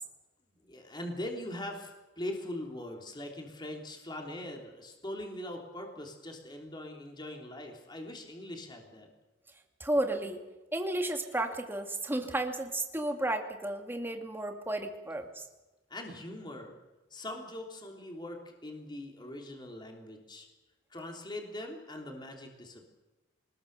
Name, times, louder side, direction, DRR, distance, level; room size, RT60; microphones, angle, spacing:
voice 1, 0.6-9.1 15.9-16.7 17.1-20.5 20.9-22.9, left 1 dB, 20° left, 2 dB, 3.3 m, -41 dB
voice 2, 9.8-10.4 10.7-15.4, right 1 dB, 10° right, 4 dB, 2.2 m, -33 dB
25.0 x 20.5 x 6.8 m, 1.1 s
head